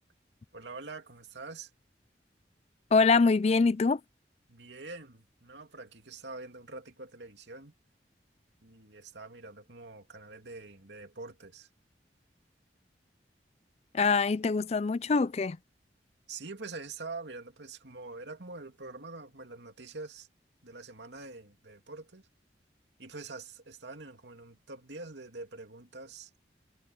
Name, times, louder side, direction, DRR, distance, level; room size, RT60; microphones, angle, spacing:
voice 1, 0.5-1.7 4.5-7.7 8.6-11.7 16.3-20.3 20.6-22.3 23.0-26.3, right 3 dB, 75° right, 2.7 m, -45 dB
voice 2, 2.9-4.0 13.9-15.6, left 4 dB, 35° left, 0.4 m, -24 dB
head